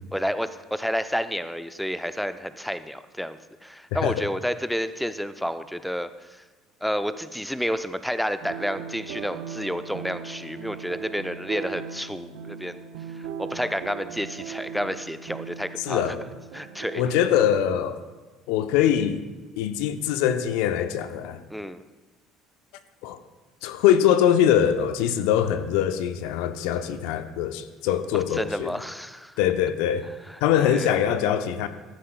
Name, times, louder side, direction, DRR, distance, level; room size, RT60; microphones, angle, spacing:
voice 1, 0.0-6.4 6.8-12.8 13.1-16.2 16.5-17.0 21.5-21.8 28.1-29.4 30.3-31.1, equal, ahead, 12 dB, 0.6 m, -30 dB
sound 1, 8.4-17.5, right 7 dB, 65° right, 0.5 m, -39 dB
voice 2, 15.8-16.2 16.9-18.0 18.5-19.2 19.6-21.4 23.0-23.2 23.6-28.8 29.4-30.1 30.4-31.7, left 10 dB, 65° left, 10 dB, 0.6 m, -23 dB
13.5 x 13.0 x 2.3 m, 1.2 s
figure-of-eight pair, 60°, 0 cm